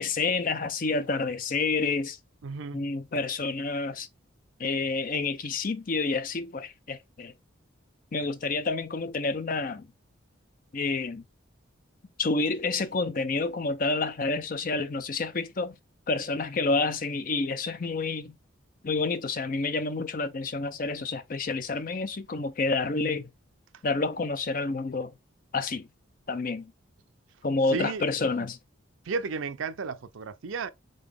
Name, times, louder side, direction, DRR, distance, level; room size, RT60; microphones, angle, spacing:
voice 1, 0.0-2.2 2.7-4.1 4.6-7.3 8.1-9.9 10.7-11.2 12.2-15.7 16.1-18.3 18.8-23.3 23.8-25.1 25.5-25.9 26.3-26.7 27.4-28.6, left 3 dB, 45° left, 0.5 m, -29 dB
voice 2, 2.4-2.8 27.7-28.1 29.1-30.7, right 4 dB, 75° right, 0.5 m, -33 dB
3.9 x 3.7 x 3.5 m
head